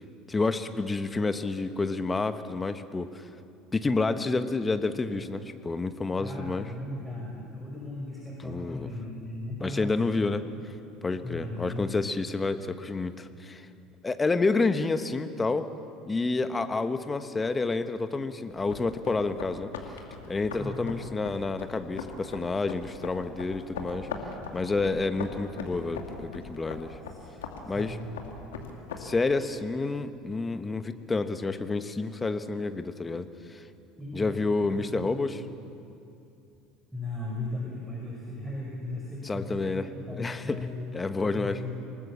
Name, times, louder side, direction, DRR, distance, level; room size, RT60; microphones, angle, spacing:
voice 1, 0.3-3.3 3.7-6.7 8.4-8.9 9.6-10.5 11.0-13.7 14.0-15.7 16.1-20.0 20.3-24.1 24.5-27.0 27.6-28.0 29.0-33.6 34.1-35.4 39.2-40.6 40.9-41.6, left 3 dB, 20° left, 10 dB, 1.4 m, -29 dB
voice 2, 6.2-10.0 10.7-10.8 11.2-12.0 20.5-20.9 27.1-27.2 27.6-28.2 34.0-34.4 34.7-35.4 36.9-41.7, left 1 dB, 5° right, -3 dB, 5.1 m, -37 dB
sound 1, 18.5-29.0, left 5 dB, 70° left, 2.4 m, -41 dB
27.5 x 19.5 x 7.3 m, 2.6 s
figure-of-eight pair, 65°, 0 cm